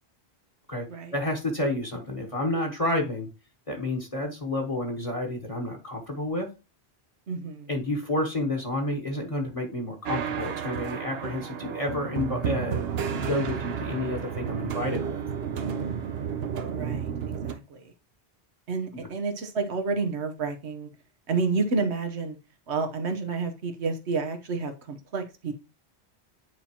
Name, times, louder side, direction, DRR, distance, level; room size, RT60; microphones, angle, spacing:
voice 1, 1.1-3.3 3.7-6.5 7.7-15.2, left 1 dB, 30° left, 2 dB, 1.2 m, -30 dB
voice 2, 7.3-7.7 16.7-17.9 18.7-20.9 21.3-22.4 22.7-25.5, right 4 dB, 85° right, 6 dB, 1.3 m, -30 dB
sound 1, 10.1-17.5, right 7 dB, 70° right, 0.9 m, -31 dB
9.3 x 4.3 x 2.8 m, 0.29 s
omnidirectional pair, 1.1 m